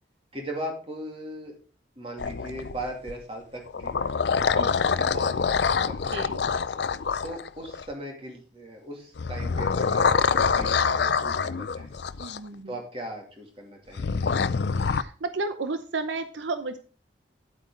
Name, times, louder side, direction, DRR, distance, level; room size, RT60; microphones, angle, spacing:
voice 1, 0.3-1.6 2.0-6.0 7.2-12.0 12.7-14.3, right 1 dB, 30° right, 1 dB, 2.5 m, -38 dB
sound 1, 2.2-3.1 3.7-7.9 9.2-12.4 14.0-15.0, left 5 dB, 65° left, 0.5 m, -25 dB
voice 2, 6.1-6.4 12.2-12.7 14.7-16.8, right 3 dB, 80° right, 9 dB, 0.7 m, -32 dB
9.4 x 8.4 x 3.7 m, 0.37 s
head